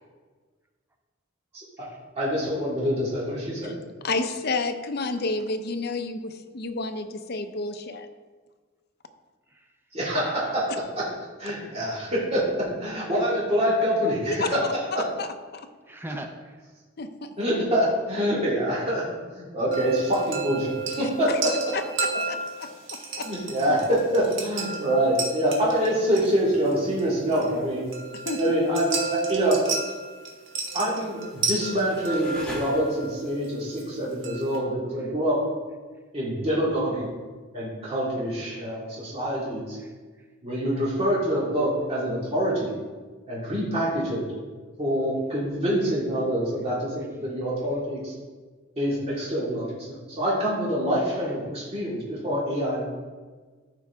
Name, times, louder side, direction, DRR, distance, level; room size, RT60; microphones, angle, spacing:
voice 1, 1.5-1.9 2.2-3.7 9.9-11.1 11.4-15.0 17.4-21.5 23.2-27.9 28.4-29.6 30.7-35.4 36.1-37.1 37.5-39.8 40.4-42.8 43.3-44.2 44.8-48.1 48.8-52.8, equal, 30° right, -7 dB, 2.2 m, -26 dB
voice 2, 4.0-8.1 14.2-14.5 15.2-15.3 15.5-15.7 17.0-17.3 21.7-21.8 22.3-23.3 28.3-28.4, left 3 dB, 50° left, 7 dB, 0.6 m, -30 dB
voice 3, 15.9-16.6 38.5-38.7 39.8-40.3, right 1 dB, 10° right, 4 dB, 0.5 m, -41 dB
sound 1, 19.7-34.6, right 4 dB, 65° right, 1.5 m, -33 dB
sound 2, 31.0-33.3, left 1 dB, 5° left, 1.6 m, -42 dB
13.0 x 4.9 x 3.5 m, 1.4 s
head